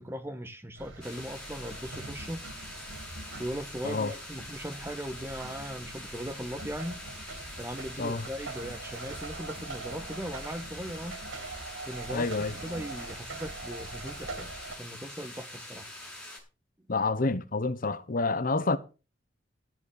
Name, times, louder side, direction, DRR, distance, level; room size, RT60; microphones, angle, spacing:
voice 1, 0.0-2.4 3.4-7.1 7.6-11.2 11.8-12.2 12.6-14.5 14.8-15.9, equal, 10° right, 1.4 m, -38 dB
sound 1, 0.8-14.8, right 2 dB, 85° right, 2.6 m, -43 dB
sound 2, 1.0-16.4, left 1 dB, 5° left, 6.6 m, -45 dB
voice 2, 12.1-12.5 16.9-18.8, left 3 dB, 45° left, 0.9 m, -28 dB
13.5 x 7.4 x 7.0 m
head